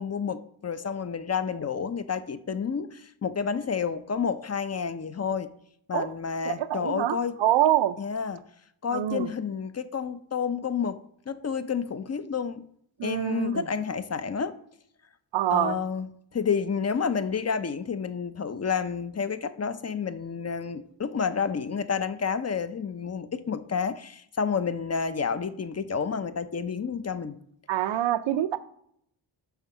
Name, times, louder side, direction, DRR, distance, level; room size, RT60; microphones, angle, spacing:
voice 1, 0.0-5.5 5.9-7.3 8.0-8.4 8.8-11.0 11.3-12.6 13.0-14.5 15.5-27.4, left 6 dB, 35° left, 0.7 m, -30 dB
voice 2, 6.5-8.0 8.9-9.3 13.0-13.7 15.3-15.8 27.7-28.6, right 12 dB, 75° right, 0.6 m, -25 dB
5.8 x 3.6 x 5.6 m
cardioid pair, 45°, 45 cm